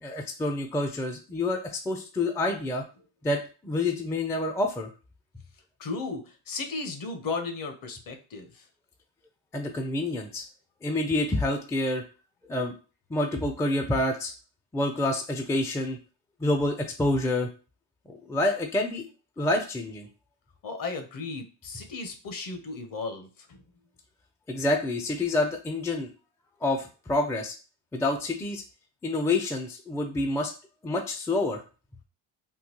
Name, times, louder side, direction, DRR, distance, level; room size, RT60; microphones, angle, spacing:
voice 1, 0.0-1.6 1.9-2.8 3.2-4.9 9.5-10.4 10.8-12.0 12.5-12.7 13.1-14.3 14.7-16.0 16.4-17.5 18.1-19.1 19.4-20.1 24.5-26.1 26.6-27.5 27.9-28.6 29.0-30.5 30.8-31.6, left 2 dB, 5° left, 4 dB, 0.4 m, -27 dB
voice 2, 5.8-8.7 20.6-23.6, left 3 dB, 45° left, 7 dB, 0.8 m, -35 dB
3.7 x 2.3 x 2.9 m, 0.35 s
supercardioid pair, 85°, 45 cm